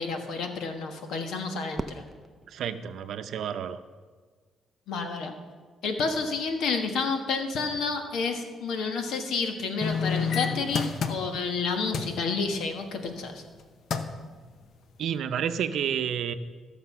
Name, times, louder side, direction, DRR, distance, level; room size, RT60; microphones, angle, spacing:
voice 1, 0.0-2.0 4.9-5.3 5.8-13.4, left 4 dB, 80° left, 5 dB, 1.4 m, -30 dB
Fireworks, 1.7-4.0, right 2 dB, 15° right, 0.6 m, -41 dB
voice 2, 2.5-3.8 15.0-16.3, right 8 dB, 70° right, 10 dB, 0.6 m, -30 dB
sound 1, 9.8-11.6 11.9-12.2 13.5-13.6 13.9-14.2 14.8-14.9, left 6 dB, 65° left, 0.8 m, -29 dB
14.0 x 6.7 x 5.6 m, 1.5 s
cardioid pair, 90°, 0 cm